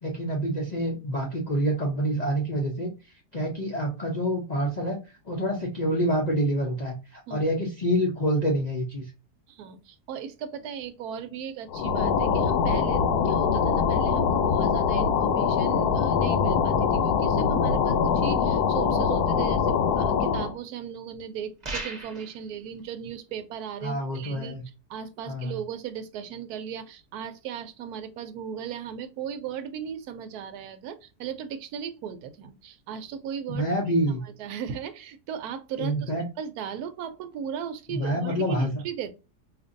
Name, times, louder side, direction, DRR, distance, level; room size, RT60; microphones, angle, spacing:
voice 1, 0.0-2.9 3.3-5.0 5.3-9.0 23.8-24.6 25.3-25.6 33.5-34.2 35.8-36.2 37.9-38.7, equal, 50° left, 0.4 m, -27 dB
voice 2, 9.5-24.6 24.9-33.6 34.2-39.1, right 8 dB, 75° right, 1.1 m, -37 dB
sound 1, 11.7-20.6, left 6 dB, 75° left, 1.1 m, -23 dB
sound 2, 21.6-22.4, right 2 dB, 35° right, 0.8 m, -35 dB
4.4 x 2.5 x 2.5 m
omnidirectional pair, 1.8 m